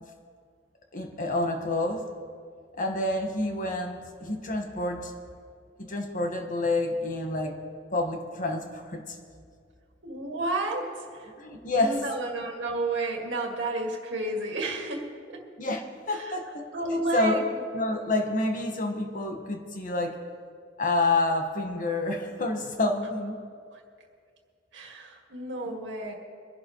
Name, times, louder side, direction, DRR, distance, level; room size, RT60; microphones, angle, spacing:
voice 1, 0.9-2.1 2.8-5.1 5.8-7.5 7.9-9.2 11.4-12.0 15.6-17.4 17.7-20.2 20.8-23.4, left 2 dB, 45° left, 3 dB, 1.5 m, -28 dB
voice 2, 10.0-11.3 11.8-15.1 15.3-15.4 16.1-16.3 16.7-17.5 23.7-23.8 24.7-26.1, right 2 dB, 75° right, 1 dB, 2.0 m, -31 dB
24.0 x 11.5 x 3.1 m, 2.2 s
head